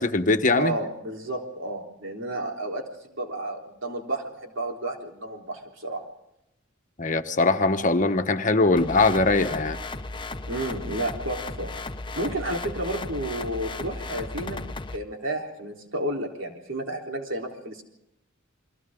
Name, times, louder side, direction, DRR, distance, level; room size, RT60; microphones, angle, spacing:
voice 1, 0.0-0.7 7.0-9.8, left 3 dB, 40° left, 7 dB, 1.2 m, -21 dB
voice 2, 0.6-2.8 3.1-6.0 10.5-11.7 12.2-14.7 14.9-17.8, right 1 dB, 70° right, 1 dB, 3.8 m, -31 dB
sound 1, 8.8-15.0, left 2 dB, 25° left, 0.8 m, -35 dB
30.0 x 23.0 x 3.8 m, 0.84 s
head